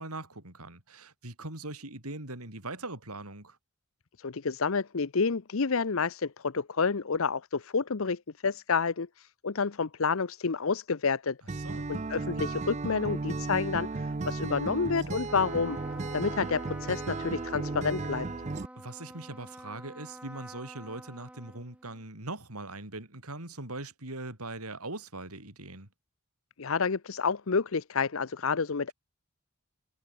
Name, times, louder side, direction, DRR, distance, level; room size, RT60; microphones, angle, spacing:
voice 1, 0.0-3.6 11.6-11.9 18.8-25.9, right 2 dB, 90° right, 6.0 m, -41 dB
voice 2, 4.2-11.4 11.9-15.8 16.1-18.3 26.6-28.9, left 5 dB, 70° left, 0.7 m, -29 dB
Acoustic guitar, 11.5-18.7, right 3 dB, 30° right, 0.5 m, -34 dB
Trumpet, 15.2-22.0, right 1 dB, 5° right, 3.8 m, -47 dB
head